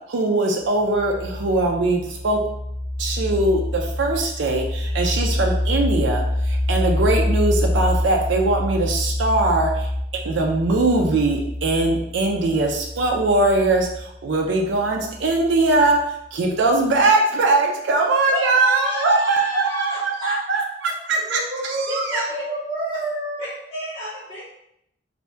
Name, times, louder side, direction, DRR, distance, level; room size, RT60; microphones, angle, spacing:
voice 1, 0.1-2.4 3.0-22.2, right 2 dB, 75° right, 1 dB, 0.4 m, -21 dB
sound 1, 0.6-16.0, left 1 dB, 85° left, 0.6 m, -27 dB
voice 2, 18.3-20.3 21.9-22.3 23.4-24.4, equal, 20° left, -11 dB, 1.0 m, -30 dB
voice 3, 21.2-23.6, right 2 dB, 15° right, -16 dB, 1.0 m, -29 dB
2.7 x 2.1 x 3.3 m, 0.76 s
head